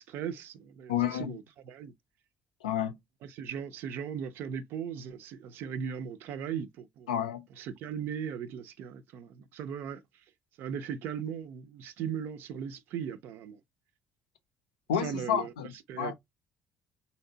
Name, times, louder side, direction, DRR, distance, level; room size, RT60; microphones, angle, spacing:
voice 1, 0.0-1.9 3.2-7.1 7.6-10.2 10.6-13.6 14.9-15.5 15.9-16.1, right 8 dB, 60° right, 0.4 m, -38 dB
voice 2, 0.9-1.3 2.6-3.0 7.1-7.5 14.9-16.1, left 9 dB, 80° left, 0.4 m, -30 dB
3.1 x 2.8 x 2.7 m
figure-of-eight pair, 50°, 4 cm